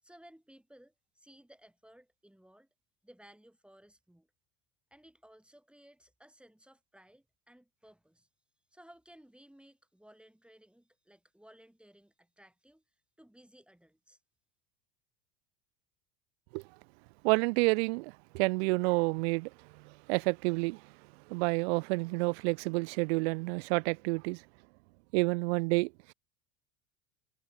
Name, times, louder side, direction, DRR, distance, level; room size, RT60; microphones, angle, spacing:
voice 1, 0.0-2.7 3.0-4.3 4.9-8.3 8.7-12.8 13.2-14.2, right 1 dB, 5° right, 7.1 m, -59 dB
voice 2, 17.2-19.5 19.9-20.8 21.3-24.4 25.1-25.9, right 28 dB, 55° right, 0.5 m, -29 dB
hypercardioid pair, 80°, 39 cm